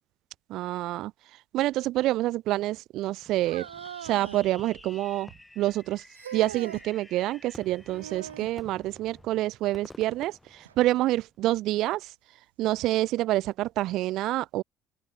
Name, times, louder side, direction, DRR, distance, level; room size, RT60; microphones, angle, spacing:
voice 1, 0.5-1.1 1.5-3.7 4.0-5.3 5.6-6.0 6.3-12.1 12.6-14.6, right 16 dB, 65° right, 0.8 m, -27 dB
Fireworks, 3.2-11.4, left 2 dB, 15° left, 2.2 m, -51 dB
sound 1, 3.5-4.5 6.1-6.9 7.9-8.6 10.6-10.8 11.6-11.7 12.7-12.8, right 9 dB, 90° right, 0.4 m, -41 dB
open air
hypercardioid pair, 55°, 0 cm